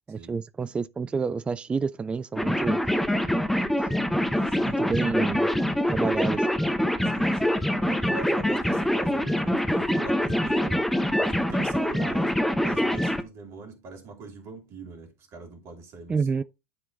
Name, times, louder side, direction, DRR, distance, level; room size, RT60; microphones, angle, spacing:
voice 1, 0.1-2.8 4.6-5.5 5.9-6.5 16.1-16.4, right 5 dB, 15° right, 0.3 m, -29 dB
sound 1, 2.4-13.2, left 1 dB, 5° left, 0.9 m, -25 dB
voice 2, 4.4-4.9 7.0-10.9 11.2-16.3, right 3 dB, 40° right, 2.8 m, -42 dB
10.0 x 3.8 x 4.0 m
figure-of-eight pair, 75°, 7 cm